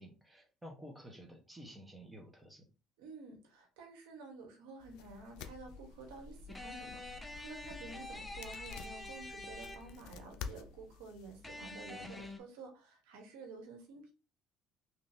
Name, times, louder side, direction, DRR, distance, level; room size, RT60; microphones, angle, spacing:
voice 1, 0.0-2.6, equal, 10° right, 2 dB, 1.0 m, -52 dB
voice 2, 3.0-14.1, right 3 dB, 90° right, 2 dB, 1.0 m, -51 dB
sound 1, 4.8-12.4, left 7 dB, 80° left, 0.4 m, -52 dB
sound 2, 5.0-11.0, left 3 dB, 35° right, 0.8 m, -55 dB
sound 3, 6.5-10.2 11.4-12.4, left 2 dB, 10° left, 0.6 m, -47 dB
3.3 x 2.7 x 2.7 m, 0.31 s
supercardioid pair, 95°, 0 cm